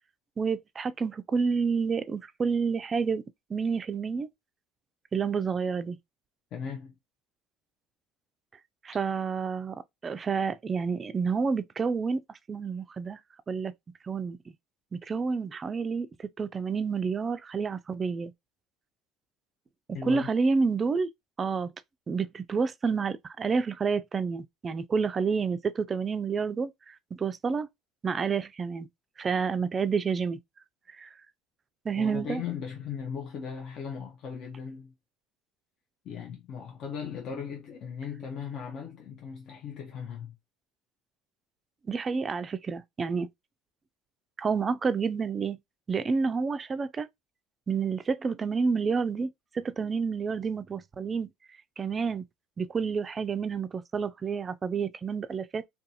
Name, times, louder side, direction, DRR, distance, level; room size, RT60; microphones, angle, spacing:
voice 1, 0.4-3.2 3.5-4.3 5.1-6.0 8.8-12.2 12.5-13.2 13.5-13.7 14.0-14.5 14.9-18.3 20.1-21.1 21.4-21.7 22.1-27.7 28.0-28.9 29.2-30.4 30.9-31.1 31.8-32.4 41.9-43.3 44.4-45.6 45.9-47.1 47.7-51.3 51.8-52.2 52.6-55.6, right 5 dB, 30° right, 0.3 m, -29 dB
voice 2, 6.5-6.9 19.9-20.3 32.0-34.9 36.0-40.3, left 7 dB, 55° left, 0.6 m, -38 dB
2.5 x 2.2 x 2.7 m
supercardioid pair, 100°, 0 cm